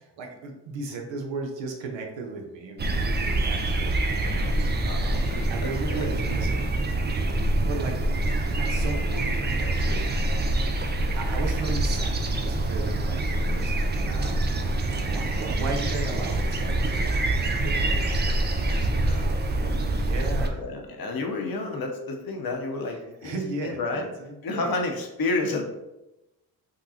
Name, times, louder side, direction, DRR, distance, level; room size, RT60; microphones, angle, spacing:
voice 1, 0.0-4.9 5.3-6.7 7.6-8.0 8.6-10.5 11.1-17.2 17.5-19.0 19.9-20.6 23.2-24.7, right 3 dB, 70° right, 2 dB, 0.8 m, -36 dB
sound 1, 2.8-20.5, right 1 dB, 25° right, 0.4 m, -25 dB
voice 2, 4.9-5.3 5.6-6.1 18.2-19.8 20.1-20.2 20.5-24.0 24.4-25.6, left 3 dB, 50° left, 2 dB, 0.8 m, -31 dB
3.7 x 2.3 x 2.7 m, 0.96 s
hypercardioid pair, 40°, 47 cm